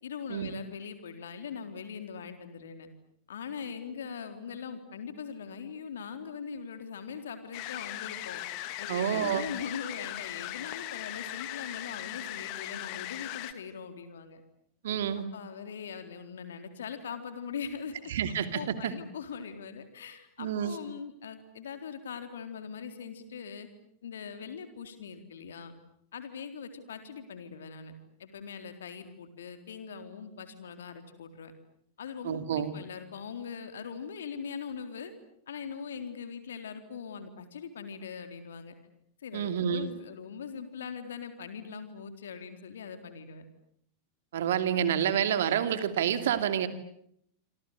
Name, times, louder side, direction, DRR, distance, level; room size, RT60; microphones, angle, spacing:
voice 1, 0.0-2.9 3.3-14.4 15.2-18.1 18.5-23.7 24.0-25.7 26.1-27.9 28.2-31.5 32.0-35.1 35.5-38.7 39.2-43.4, left 6 dB, 65° left, 8 dB, 3.9 m, -41 dB
sound 1, 7.5-13.5, left 15 dB, 45° left, 2.2 m, -39 dB
voice 2, 8.9-9.5 14.8-15.3 18.1-18.9 20.4-20.8 32.2-32.7 39.3-39.9 44.3-46.7, right 9 dB, 60° right, 10 dB, 2.6 m, -28 dB
27.0 x 26.5 x 8.2 m, 0.71 s
figure-of-eight pair, 90°, 0 cm